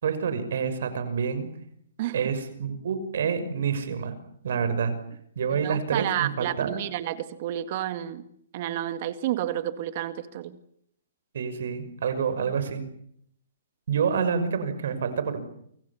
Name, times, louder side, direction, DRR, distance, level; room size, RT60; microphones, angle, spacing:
voice 1, 0.0-1.5 2.1-4.1 4.4-4.9 5.4-6.8 11.3-12.8 13.9-15.4, right 6 dB, 70° right, 5.9 m, -27 dB
voice 2, 5.5-8.3 8.5-10.6, right 12 dB, 45° right, 2.0 m, -30 dB
28.5 x 25.5 x 7.3 m
hypercardioid pair, 150°, 0 cm